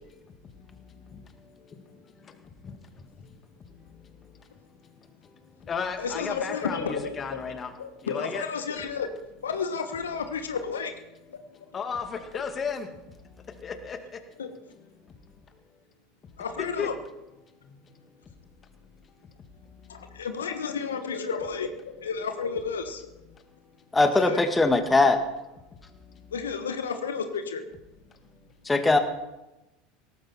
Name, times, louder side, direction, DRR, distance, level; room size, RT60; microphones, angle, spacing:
voice 1, 0.0-3.4 3.7-4.5 5.4-8.5 11.5-13.0 13.2-14.4 15.0-15.1 16.8-16.9 17.6-18.1 19.0-19.1 19.5-20.2 23.3-23.9 25.9-26.3 28.3-28.5, left 6 dB, 30° left, 7 dB, 2.2 m, -37 dB
voice 2, 6.0-7.4 7.8-9.1 9.4-11.0 11.3-11.4 14.4-14.5 16.4-16.9 19.9-23.1 24.2-24.4 26.3-27.6, left 6 dB, 80° left, 7 dB, 1.3 m, -32 dB
voice 3, 23.9-25.2 28.7-29.0, left 3 dB, 15° left, 7 dB, 1.8 m, -20 dB
17.5 x 14.5 x 4.4 m, 0.99 s
hypercardioid pair, 80°, 0 cm